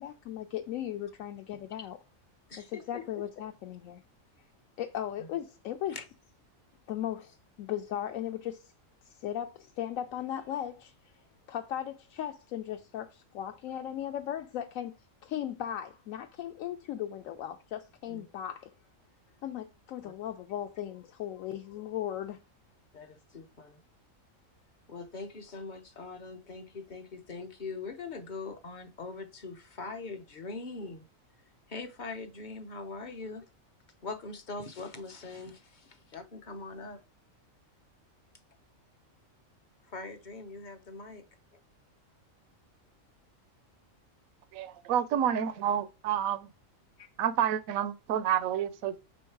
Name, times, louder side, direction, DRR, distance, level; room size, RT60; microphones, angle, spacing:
voice 1, 0.0-2.0 2.7-4.0 4.8-6.0 6.9-8.7 9.0-11.1 11.5-14.9 15.2-18.7 19.4-22.4, left 11 dB, 80° left, 1.0 m, -37 dB
voice 2, 2.5-3.3 5.2-5.3 5.9-6.1 18.1-18.3 20.0-20.1 22.9-23.8 24.9-31.1 31.7-33.4 34.0-37.0 39.8-41.2 41.5-41.6 47.0-47.1, left 4 dB, 45° left, 0.7 m, -42 dB
voice 3, 44.5-46.5 47.2-49.0, right 9 dB, 90° right, 1.0 m, -29 dB
6.2 x 3.6 x 4.6 m
omnidirectional pair, 1.4 m